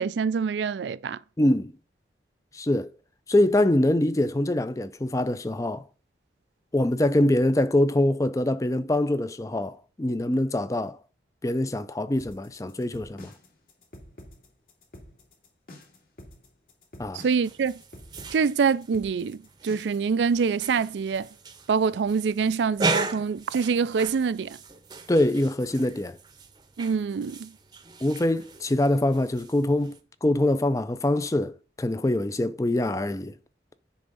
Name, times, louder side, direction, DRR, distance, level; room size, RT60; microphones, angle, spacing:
voice 1, 0.0-1.2 17.1-17.8 18.3-21.3 21.7-24.6 26.8-27.5, right 5 dB, 80° right, 0.4 m, -25 dB
voice 2, 1.4-1.7 2.5-2.9 3.3-5.8 6.7-11.0 11.4-13.3 17.0-17.2 25.1-26.2 28.0-33.3, left 1 dB, 20° left, 0.4 m, -24 dB
sound 1, 12.2-20.1, left 1 dB, 55° left, 2.2 m, -48 dB
sound 2, 17.4-30.0, right 3 dB, 25° right, 0.7 m, -37 dB
10.0 x 3.6 x 5.4 m
head